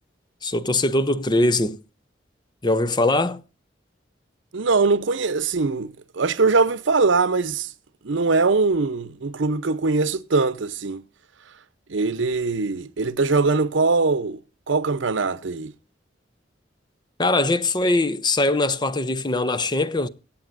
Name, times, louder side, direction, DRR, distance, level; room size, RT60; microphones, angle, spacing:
voice 1, 0.4-1.8 2.6-3.4 17.2-20.1, left 2 dB, 25° left, 0.7 m, -21 dB
voice 2, 4.5-7.7 8.0-11.0 11.9-14.4 14.7-15.7, right 4 dB, 85° right, 0.7 m, -22 dB
23.0 x 8.7 x 2.6 m
head